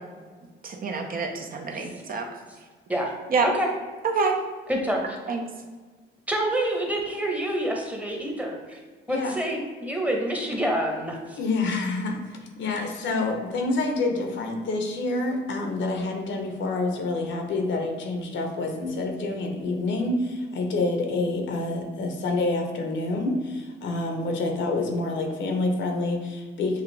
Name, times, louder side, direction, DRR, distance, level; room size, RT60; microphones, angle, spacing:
voice 1, 0.6-2.3 3.3-3.5 4.0-4.4 5.3-5.4, right 4 dB, 45° right, 3 dB, 0.7 m, -26 dB
voice 2, 4.7-5.2 6.3-8.8 9.1-11.4, right 1 dB, 5° right, 0 dB, 1.0 m, -27 dB
voice 3, 11.4-26.8, left 2 dB, 70° left, 3 dB, 0.9 m, -27 dB
6.6 x 2.4 x 3.3 m, 1.4 s
cardioid pair, 90°, 20 cm